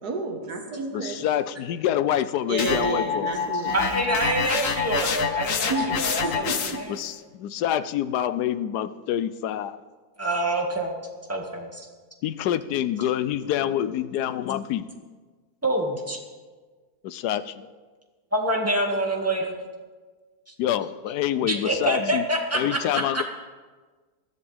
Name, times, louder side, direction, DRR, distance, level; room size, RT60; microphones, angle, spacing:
voice 1, 0.0-1.2 2.5-3.7 5.7-6.8, right 3 dB, 75° right, 3 dB, 2.1 m, -30 dB
voice 2, 0.9-3.4 6.9-9.8 12.2-14.9 17.0-17.6 20.6-22.2 22.5-23.2, left 11 dB, 85° left, 14 dB, 1.2 m, -26 dB
sound 1, 2.6-7.0, left 6 dB, 60° left, 1.3 m, -27 dB
voice 3, 3.7-7.0 10.2-10.9 11.3-11.9 15.6-16.2 18.3-19.5 21.4-23.2, right 1 dB, 10° right, 0 dB, 1.9 m, -26 dB
21.0 x 14.5 x 3.5 m, 1.4 s
omnidirectional pair, 1.7 m